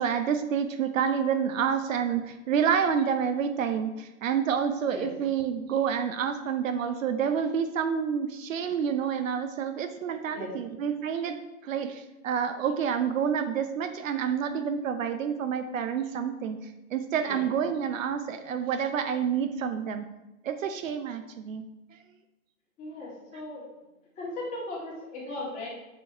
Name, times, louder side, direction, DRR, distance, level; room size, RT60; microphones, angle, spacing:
voice 1, 0.0-11.4 11.6-16.6 16.9-20.1 20.4-21.6 21.9-22.0, right 7 dB, 65° right, 8 dB, 0.7 m, -28 dB
voice 2, 22.8-23.7 24.2-25.7, left 2 dB, 15° left, -4 dB, 1.8 m, -37 dB
7.8 x 4.6 x 4.4 m, 0.99 s
hypercardioid pair, 160°, 43 cm